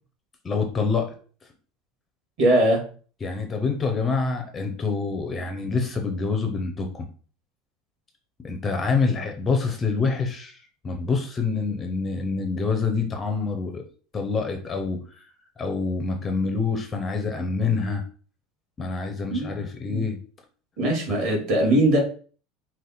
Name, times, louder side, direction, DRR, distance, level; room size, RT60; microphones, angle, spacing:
voice 1, 0.4-1.1 3.2-7.1 8.4-13.8 14.1-15.2 15.6-18.0 18.8-20.2, left 4 dB, 15° left, 4 dB, 0.5 m, -26 dB
voice 2, 2.4-2.8 19.3-19.5 19.9-20.0 20.8-22.0, right 1 dB, 45° right, 0 dB, 1.8 m, -20 dB
4.8 x 2.1 x 4.1 m, 0.41 s
cardioid pair, 165°, 0 cm